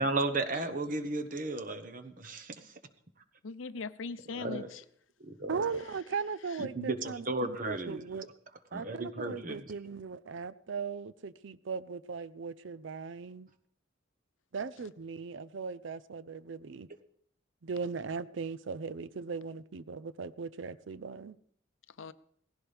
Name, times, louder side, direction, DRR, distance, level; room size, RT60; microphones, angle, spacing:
voice 1, 0.0-2.7 4.3-4.7 5.2-5.6 6.6-8.0 8.7-9.7, right 2 dB, 40° right, 7 dB, 1.2 m, -34 dB
voice 2, 0.5-1.1 3.4-4.8 5.7-6.7 14.8-14.9 22.0-22.1, left 4 dB, 80° left, 14 dB, 0.6 m, -43 dB
voice 3, 5.5-8.3 8.7-13.5 14.5-16.9 17.6-21.4, right 5 dB, 70° right, 15 dB, 0.5 m, -38 dB
18.0 x 15.5 x 3.5 m, 0.63 s
head